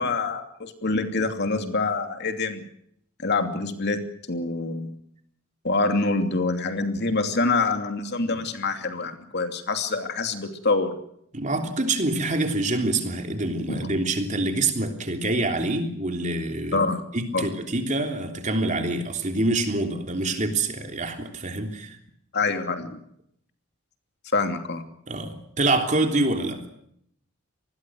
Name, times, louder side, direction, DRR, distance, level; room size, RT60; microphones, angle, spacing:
voice 1, 0.0-2.6 3.2-4.0 4.3-4.9 5.6-11.0 13.7-13.8 16.7-17.0 17.3-17.5 22.3-23.0 24.3-24.8, left 3 dB, 50° left, 6 dB, 2.8 m, -25 dB
voice 2, 11.3-16.9 17.1-22.0 25.1-26.6, right 2 dB, 35° right, 5 dB, 3.3 m, -26 dB
26.5 x 20.5 x 6.4 m, 0.70 s
head